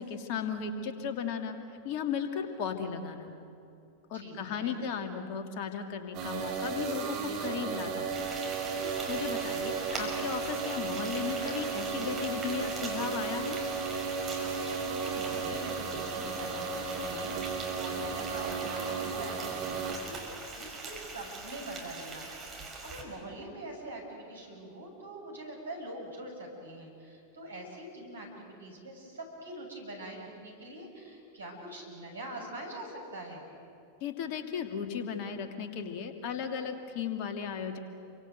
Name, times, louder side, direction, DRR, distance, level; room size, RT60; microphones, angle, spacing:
voice 1, 0.0-1.6 1.8-3.3 4.1-8.1 8.8-13.6 34.0-37.8, left 7 dB, 45° left, 6 dB, 2.5 m, -35 dB
voice 2, 4.1-4.8 14.4-33.4, right 1 dB, 75° right, 0 dB, 7.4 m, -44 dB
sound 1, 6.1-19.9, right 5 dB, 40° right, 4.1 m, -34 dB
Frying (food), 8.1-23.0, right 3 dB, 20° right, 5.7 m, -43 dB
29.0 x 24.5 x 8.1 m, 2.7 s
figure-of-eight pair, 90°, 0 cm